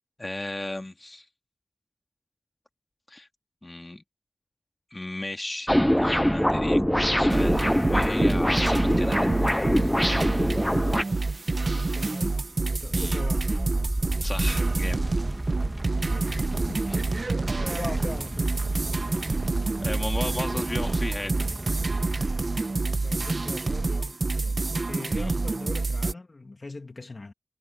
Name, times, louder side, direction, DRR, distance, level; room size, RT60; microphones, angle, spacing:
voice 1, 0.2-1.3 3.1-3.3 3.6-4.0 4.9-5.7 6.0-6.8 7.2-9.3 12.9-13.2 14.2-15.0 19.8-21.3 25.2-25.3, left 1 dB, 30° left, 2.1 m, -34 dB
sound 1, 5.7-11.0, equal, 5° left, 0.3 m, -23 dB
sound 2, 7.3-26.1, right 3 dB, 65° right, 0.8 m, -28 dB
voice 2, 11.5-12.4 12.6-13.5 16.0-18.7 20.2-20.9 22.5-27.3, left 3 dB, 55° left, 2.2 m, -41 dB
sound 3, 12.5-23.3, right 1 dB, 30° right, 1.5 m, -33 dB
wide cardioid pair, 60°, 0 cm